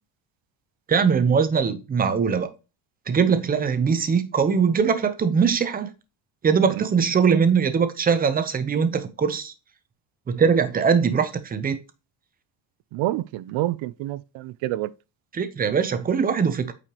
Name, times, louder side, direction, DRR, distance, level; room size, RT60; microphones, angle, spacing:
voice 1, 0.9-2.5 3.1-5.9 6.4-9.5 10.3-11.8 15.3-16.7, right 6 dB, 20° right, 0.6 m, -21 dB
voice 2, 12.9-14.9, right 15 dB, 75° right, 0.6 m, -28 dB
8.8 x 4.9 x 2.8 m
cardioid pair, 175°, 48 cm